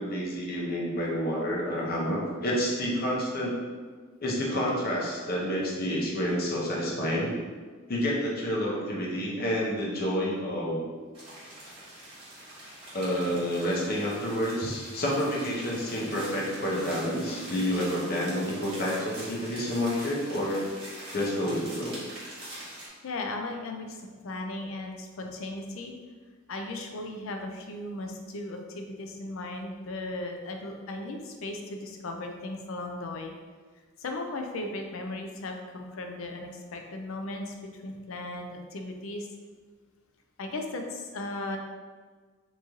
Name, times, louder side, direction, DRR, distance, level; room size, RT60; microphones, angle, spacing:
voice 1, 0.0-3.5 4.2-7.3 7.9-10.8 12.9-20.6 21.1-22.0, equal, 50° left, -3 dB, 0.8 m, -29 dB
sound 1, 11.1-22.9, right 1 dB, 30° right, 1.3 m, -44 dB
voice 2, 23.0-25.9 26.5-33.3 34.0-39.3 40.4-41.6, left 2 dB, 80° left, 3 dB, 0.5 m, -36 dB
3.0 x 2.7 x 3.6 m, 1.5 s
head